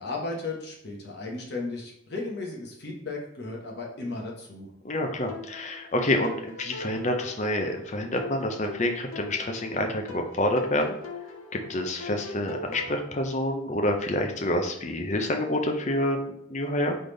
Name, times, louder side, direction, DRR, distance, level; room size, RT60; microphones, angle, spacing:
voice 1, 0.0-4.7, left 3 dB, 50° left, -1 dB, 1.1 m, -35 dB
voice 2, 4.8-11.0 11.5-16.9, left 1 dB, 35° left, 4 dB, 0.6 m, -28 dB
sound 1, 5.3-13.0, left 2 dB, 75° left, 0.6 m, -42 dB
3.9 x 3.3 x 3.9 m, 0.73 s
head